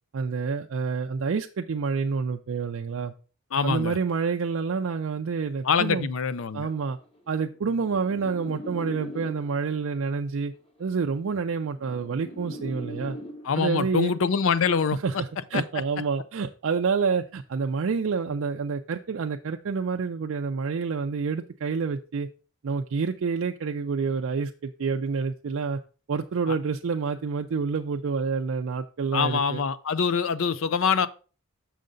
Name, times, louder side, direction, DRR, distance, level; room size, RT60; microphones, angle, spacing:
voice 1, 0.1-3.1 3.6-6.1 6.5-7.0 7.3-10.5 10.8-13.2 13.6-14.1 15.0-22.3 22.6-25.8 26.1-29.6, right 5 dB, 60° right, 0.4 m, -28 dB
voice 2, 3.5-4.0 5.6-6.7 13.4-15.0 15.5-15.6 26.5-26.6 29.1-31.1, left 6 dB, 65° left, 0.5 m, -24 dB
sound 1, 6.8-9.8 10.8-13.8 14.8-15.2, equal, 25° left, 1.1 m, -41 dB
6.6 x 6.4 x 3.8 m
head